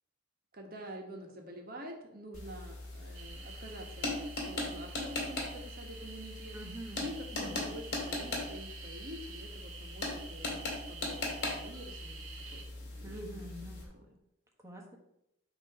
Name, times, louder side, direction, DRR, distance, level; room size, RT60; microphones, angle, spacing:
voice 1, 0.5-6.6 7.0-13.4, equal, 45° right, 2 dB, 1.3 m, -47 dB
sound 1, 2.3-13.8, left 2 dB, 50° left, 2.4 m, -40 dB
sound 2, 3.1-12.6, right 6 dB, 80° right, 1.2 m, -50 dB
voice 2, 6.5-7.1 7.4-7.7 13.0-13.9 14.6-15.0, right 1 dB, 15° right, 1 dB, 1.1 m, -46 dB
8.4 x 3.0 x 5.9 m, 0.82 s
head